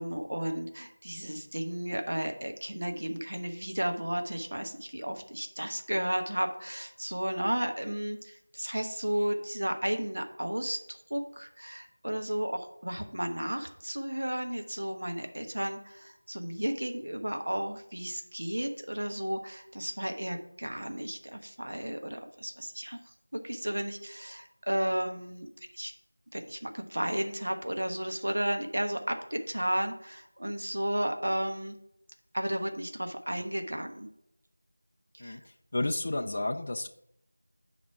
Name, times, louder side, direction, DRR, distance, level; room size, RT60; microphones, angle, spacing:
voice 1, 0.0-25.5 25.7-25.9 26.3-31.8 32.3-34.1 35.2-35.4, equal, 70° right, 5 dB, 1.1 m, -33 dB
voice 2, 35.2-36.9, left 2 dB, 25° left, 5 dB, 0.3 m, -32 dB
9.4 x 4.2 x 4.6 m, 0.74 s
figure-of-eight pair, 180°, 0 cm